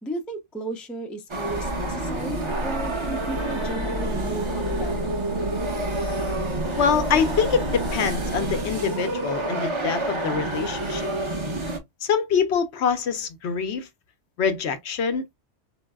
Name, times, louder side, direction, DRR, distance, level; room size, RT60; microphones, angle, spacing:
voice 1, 0.0-5.1, right 1 dB, ahead, 0.4 m, -34 dB
sound 1, 1.3-11.8, right 2 dB, 30° right, 0.7 m, -29 dB
sound 2, 1.4-8.6, equal, 70° right, 1.3 m, -32 dB
voice 2, 6.8-11.1 12.0-13.9 14.4-15.3, left 6 dB, 75° left, 0.9 m, -25 dB
4.5 x 2.1 x 2.2 m
omnidirectional pair, 1.2 m